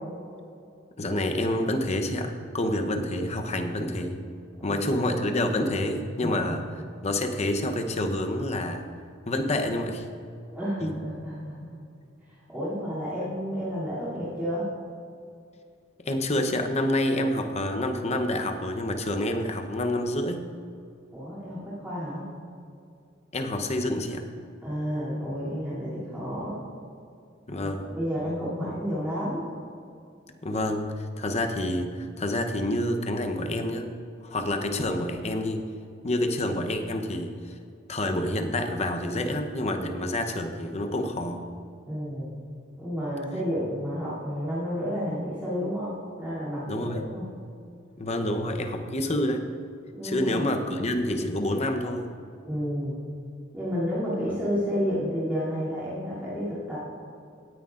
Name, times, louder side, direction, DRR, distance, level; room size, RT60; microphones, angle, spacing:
voice 1, 1.0-4.2 4.6-6.6 7.0-8.8 9.3-10.1 10.8-10.9 16.1-20.4 23.3-24.3 27.5-27.9 30.4-33.9 34.2-35.6 36.0-37.5 37.9-41.5 46.7-47.0 48.0-49.5 50.0-52.2, left 1 dB, 35° left, 5 dB, 0.8 m, -28 dB
voice 2, 6.2-6.6 10.5-11.7 12.2-14.7 21.1-22.3 24.6-26.6 27.5-29.5 41.9-42.4 42.8-47.3 49.9-50.5 52.4-53.0 53.5-56.8, equal, 10° right, -11 dB, 2.8 m, -31 dB
17.5 x 9.6 x 2.5 m, 2.4 s
head